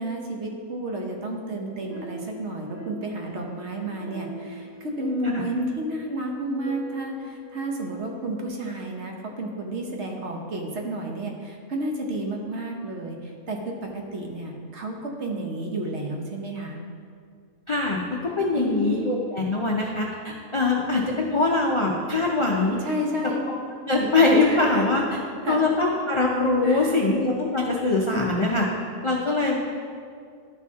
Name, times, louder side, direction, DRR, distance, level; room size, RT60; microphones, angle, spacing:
voice 1, 0.0-16.8 18.6-19.1 22.8-23.5 24.4-25.0 25.4-25.6 26.6-27.0 29.4-29.5, right 1 dB, 55° right, 1 dB, 1.1 m, -31 dB
sound 1, 1.5-8.4, equal, 80° right, 2.0 m, -43 dB
voice 2, 17.7-22.8 23.5-23.6 23.9-25.2 25.4-28.7 29.0-29.6, left 2 dB, 55° left, -2 dB, 0.3 m, -23 dB
11.5 x 4.3 x 3.6 m, 2.2 s
omnidirectional pair, 1.5 m